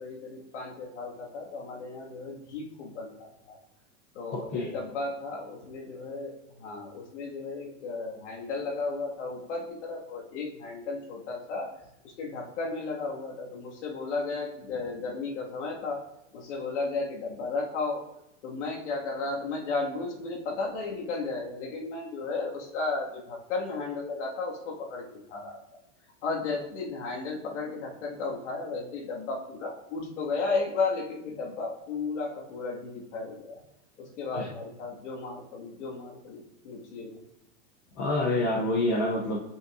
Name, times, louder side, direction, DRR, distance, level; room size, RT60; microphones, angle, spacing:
voice 1, 0.0-3.6 4.1-11.7 12.0-16.0 16.3-18.0 18.4-25.6 26.2-33.6 34.0-37.2, left 3 dB, 65° left, -1 dB, 1.8 m, -34 dB
voice 2, 4.3-4.7 34.3-34.5 38.0-39.4, left 2 dB, 20° left, -2 dB, 0.5 m, -27 dB
9.9 x 5.4 x 2.5 m, 0.86 s
supercardioid pair, 165°, 38 cm